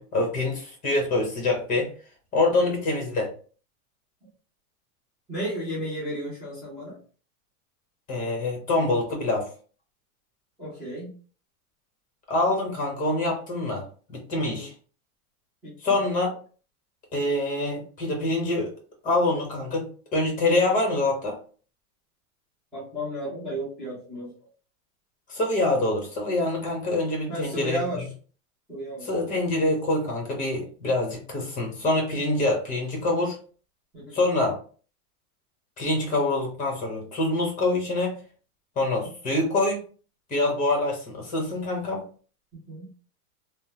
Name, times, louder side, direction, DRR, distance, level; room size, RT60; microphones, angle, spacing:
voice 1, 0.0-1.9 2.3-3.3 8.1-9.5 12.3-13.8 14.1-14.7 15.8-16.3 17.1-18.7 19.0-21.4 25.3-28.1 29.0-33.4 34.1-34.6 35.8-38.2 38.8-39.8 40.3-42.0, left 2 dB, 20° left, 1 dB, 1.0 m, -25 dB
voice 2, 5.3-7.0 10.6-11.1 14.3-14.7 15.6-16.0 22.7-24.3 27.3-28.0 28.7-29.1 33.9-34.2 42.5-42.9, equal, ahead, -14 dB, 0.3 m, -34 dB
3.1 x 2.1 x 2.8 m, 0.40 s
supercardioid pair, 150°, 44 cm